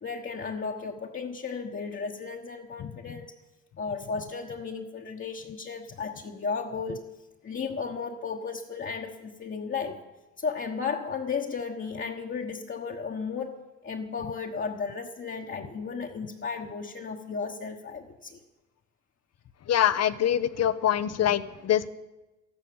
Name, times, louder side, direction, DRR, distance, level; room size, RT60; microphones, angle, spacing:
voice 1, 0.0-3.3 3.8-7.1 7.4-10.0 10.4-18.4, left 5 dB, 40° left, -1 dB, 1.4 m, -34 dB
voice 2, 19.7-21.9, left 10 dB, 55° left, 14 dB, 0.9 m, -24 dB
13.5 x 12.5 x 7.8 m, 1.1 s
cardioid pair, 90°, 30 cm